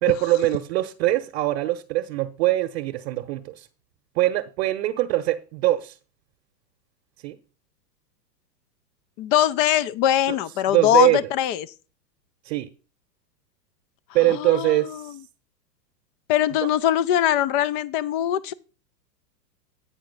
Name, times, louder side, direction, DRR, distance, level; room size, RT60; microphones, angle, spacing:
voice 1, 0.0-3.7 4.1-5.9 7.2-7.4 10.7-11.2 12.5-12.7 14.1-15.0, right 16 dB, 45° right, 0.9 m, -22 dB
voice 2, 9.2-11.7 14.3-15.1 16.3-18.5, left 11 dB, 35° left, 0.5 m, -22 dB
9.0 x 4.7 x 5.3 m
hypercardioid pair, 110°, 50 cm